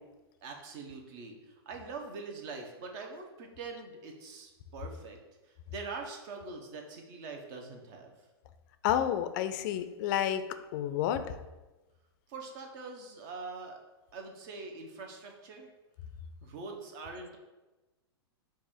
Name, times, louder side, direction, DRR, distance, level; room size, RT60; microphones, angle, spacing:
voice 1, 0.4-5.2 5.4-8.3 12.3-13.8 14.1-15.7 16.4-17.4, right 4 dB, 50° right, 3 dB, 0.9 m, -43 dB
voice 2, 8.8-10.4 10.7-11.2, left 10 dB, 50° left, 10 dB, 0.4 m, -29 dB
4.6 x 2.4 x 4.3 m, 1.1 s
hypercardioid pair, 110°, 14 cm